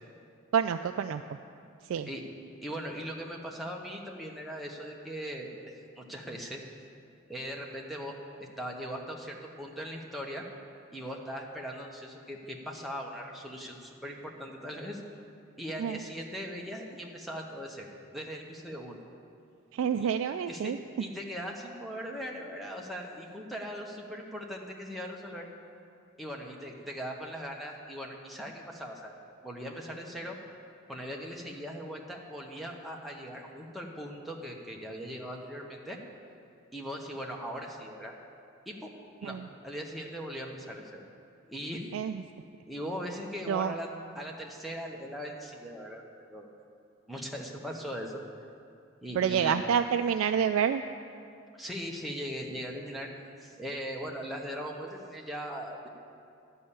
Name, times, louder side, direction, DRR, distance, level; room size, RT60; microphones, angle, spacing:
voice 1, 0.5-1.2 1.9-2.1 15.8-16.0 19.7-20.8 39.2-39.5 41.9-42.2 43.5-43.7 49.2-50.8, right 7 dB, 80° right, 8 dB, 0.3 m, -28 dB
voice 2, 2.6-6.6 7.3-10.4 10.9-15.0 15.6-19.0 20.0-20.1 20.5-25.5 26.2-29.1 29.4-30.4 30.9-36.0 36.7-38.1 38.7-38.9 39.2-39.4 39.6-41.0 41.5-41.9 42.7-43.9 44.1-46.0 46.3-46.5 47.1-48.2 49.0-49.6 51.5-53.1 53.4-55.9, equal, ahead, -1 dB, 0.9 m, -39 dB
11.5 x 5.5 x 8.7 m, 2.5 s
head